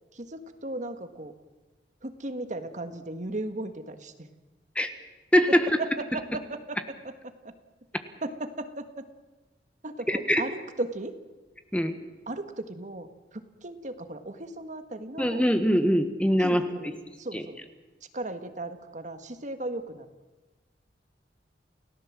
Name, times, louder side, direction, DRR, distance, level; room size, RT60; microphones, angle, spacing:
voice 1, 0.1-1.3 2.0-4.3 5.5-7.5 8.2-9.1 9.8-11.2 12.3-15.4 16.4-17.6 18.1-20.1, right 2 dB, 45° right, 9 dB, 1.6 m, -36 dB
voice 2, 5.3-5.7 10.1-10.4 11.7-12.0 15.2-16.7 17.3-17.4, equal, 5° left, 8 dB, 1.4 m, -22 dB
29.0 x 17.0 x 7.6 m, 1.2 s
head